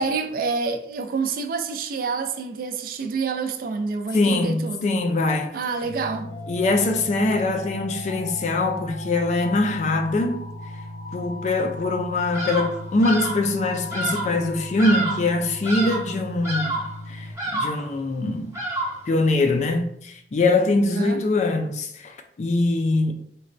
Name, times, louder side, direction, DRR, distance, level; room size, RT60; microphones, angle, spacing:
voice 1, 0.0-5.0 5.5-6.3 21.0-21.2, right 4 dB, 50° right, 0.3 m, -27 dB
voice 2, 4.1-5.5 6.5-10.4 11.1-16.7 17.1-18.5 19.1-23.1, left 2 dB, 40° left, 0.3 m, -23 dB
sound 1, 5.8-17.3, left 1 dB, 80° left, 0.8 m, -36 dB
Bird vocalization bird call bird song, 12.3-12.8 13.0-13.5 13.9-14.3 14.8-15.3 15.6-16.1 16.4-17.0 17.4-17.9 18.5-19.1, right 2 dB, 15° right, 0.7 m, -28 dB
3.9 x 2.2 x 2.5 m
head